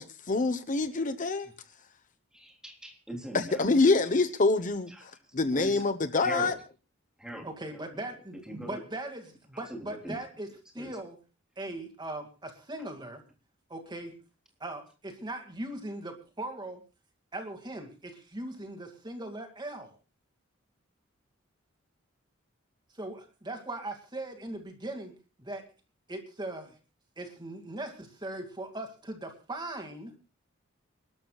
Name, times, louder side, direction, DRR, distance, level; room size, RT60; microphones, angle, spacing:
voice 1, 0.0-1.5 3.3-6.5, left 3 dB, 40° left, 10 dB, 0.9 m, -26 dB
voice 2, 2.3-3.7 4.9-5.0 5.5-5.8 6.2-6.6 7.2-8.1 8.5-8.8 9.5-10.2 10.8-10.9, equal, 5° right, 1 dB, 3.5 m, -41 dB
voice 3, 7.4-10.5 10.7-11.2 11.6-13.2 13.7-14.1 14.6-16.8 17.3-19.9 23.0-25.6 26.1-26.8 27.2-30.1, right 1 dB, 20° right, 4 dB, 2.3 m, -39 dB
28.5 x 13.0 x 2.4 m, 0.32 s
head